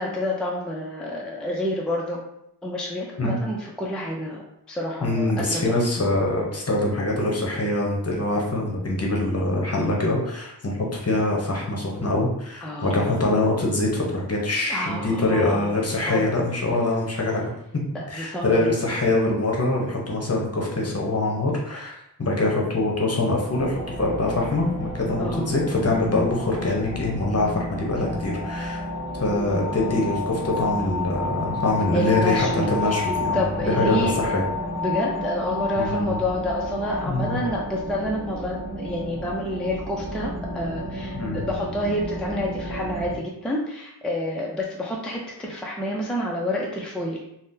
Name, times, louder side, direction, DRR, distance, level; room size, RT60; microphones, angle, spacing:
voice 1, 0.0-2.2 2.6-4.4 4.7-5.7 12.6-13.1 14.7-15.8 16.0-16.2 17.9-18.7 25.2-25.5 29.3-30.1 31.9-33.0 33.3-34.4 34.8-47.2, left 1 dB, ahead, -2 dB, 0.4 m, -29 dB
voice 2, 5.0-17.5 18.1-21.9 22.2-28.8 29.2-34.4 35.8-36.2 37.1-37.4 41.1-41.4, left 2 dB, 40° left, -2 dB, 0.7 m, -24 dB
sound 1, 23.5-43.2, left 2 dB, 75° right, 1.2 m, -31 dB
3.6 x 2.1 x 2.6 m, 0.80 s
wide cardioid pair, 70°, 41 cm